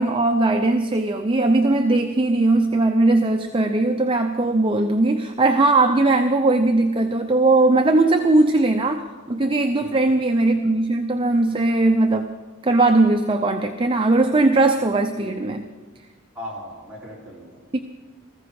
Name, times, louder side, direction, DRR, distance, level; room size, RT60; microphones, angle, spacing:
voice 1, 0.0-12.3 12.6-15.6 17.7-17.8, right 2 dB, 25° right, 5 dB, 0.6 m, -19 dB
voice 2, 9.8-10.2 16.3-17.6, left 1 dB, 5° right, -7 dB, 5.0 m, -38 dB
20.0 x 14.5 x 4.8 m, 1.3 s
head